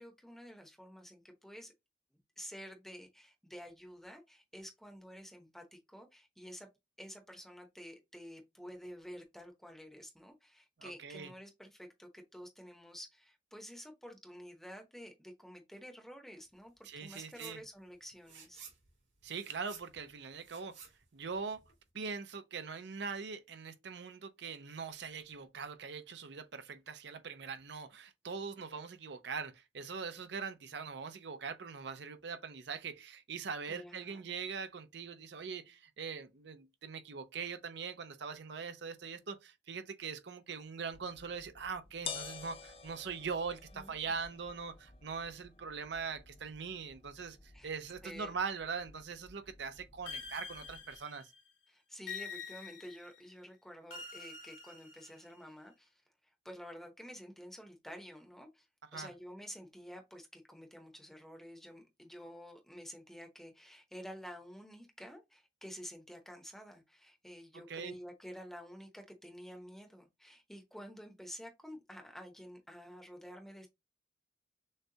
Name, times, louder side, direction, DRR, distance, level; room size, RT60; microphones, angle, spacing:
voice 1, 0.0-1.7 2.1-6.7 7.0-18.6 33.7-34.4 43.7-44.1 47.5-47.7 48.0-48.3 51.7-56.0 56.4-58.7 58.9-73.7, equal, ahead, 0.7 m, -50 dB
voice 2, 10.8-11.3 16.8-17.6 19.2-21.6 21.9-51.3 58.9-59.1 67.7-67.9, right 5 dB, 65° right, 0.5 m, -42 dB
sound 1, 17.0-17.6 17.9-21.9, right 7 dB, 85° right, 2.4 m, -54 dB
sound 2, 40.9-51.0, left 5 dB, 30° left, 0.4 m, -51 dB
sound 3, 50.1-51.4 52.1-53.2 53.9-55.4, left 5 dB, 75° left, 2.3 m, -46 dB
6.4 x 2.2 x 2.7 m
head